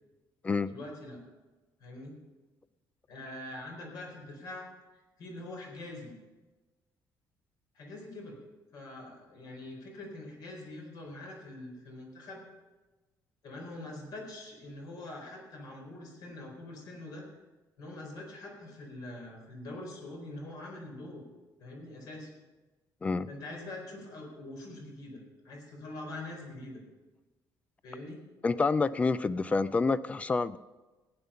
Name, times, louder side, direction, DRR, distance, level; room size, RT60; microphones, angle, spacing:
voice 1, 0.7-1.2 1.8-2.1 3.1-4.7 5.2-6.1 7.7-8.4 8.7-12.4 13.4-17.2 17.8-21.2 21.6-22.3 23.3-26.8 27.8-28.2, left 2 dB, 55° left, 1 dB, 4.3 m, -44 dB
voice 2, 28.4-30.6, left 4 dB, 15° left, 16 dB, 0.3 m, -28 dB
15.0 x 9.7 x 5.6 m, 1.2 s
cardioid pair, 165°, 8 cm